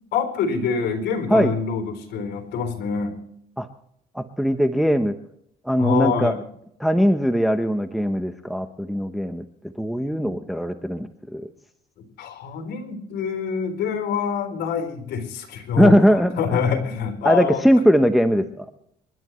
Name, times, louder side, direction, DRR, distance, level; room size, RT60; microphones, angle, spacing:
voice 1, 0.1-3.2 5.8-6.4 12.2-17.6, left 6 dB, 75° left, 6 dB, 3.7 m, -26 dB
voice 2, 4.1-5.1 5.6-6.4 6.8-9.4 9.8-11.5 15.8-16.8 17.2-18.6, equal, ahead, 7 dB, 0.9 m, -20 dB
27.5 x 11.5 x 3.2 m, 0.71 s
cardioid pair, 110°, 17 cm